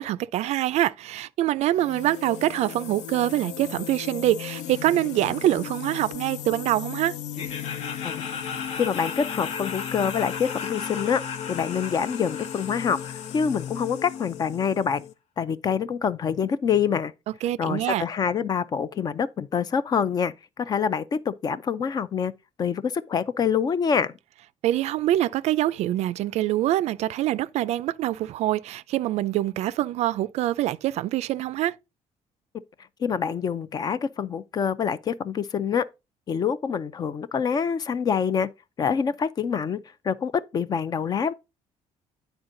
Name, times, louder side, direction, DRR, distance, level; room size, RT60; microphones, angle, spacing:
voice 1, 0.0-7.2 17.4-18.0 24.6-31.8, right 14 dB, 65° right, 0.4 m, -25 dB
sound 1, 1.7-15.1, left 10 dB, 75° left, 0.6 m, -37 dB
Laughter, 7.3-14.3, left 6 dB, 55° left, 1.0 m, -36 dB
voice 2, 8.8-15.0 15.4-17.1 17.6-22.3 22.6-24.1 33.0-35.9 36.3-38.5 38.8-41.3, left 7 dB, 35° left, 0.4 m, -26 dB
9.6 x 4.4 x 3.7 m
cardioid pair, 160°, 12 cm